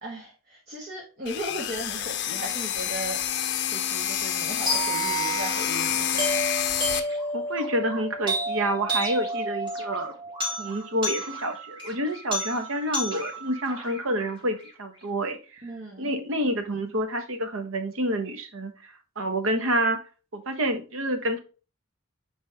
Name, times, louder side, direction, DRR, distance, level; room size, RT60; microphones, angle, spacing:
voice 1, 0.0-3.2 3.6-6.5 15.6-16.1, equal, 45° right, -3 dB, 1.3 m, -37 dB
sound 1, 1.3-7.0, left 10 dB, 55° left, 0.6 m, -28 dB
sound 2, 4.7-14.7, right 1 dB, 20° right, 2.0 m, -31 dB
voice 2, 7.3-10.1 10.6-15.6 16.0-18.7 19.2-20.0 20.3-21.4, right 1 dB, 70° right, 7 dB, 1.0 m, -28 dB
9.0 x 3.3 x 3.3 m, 0.35 s
head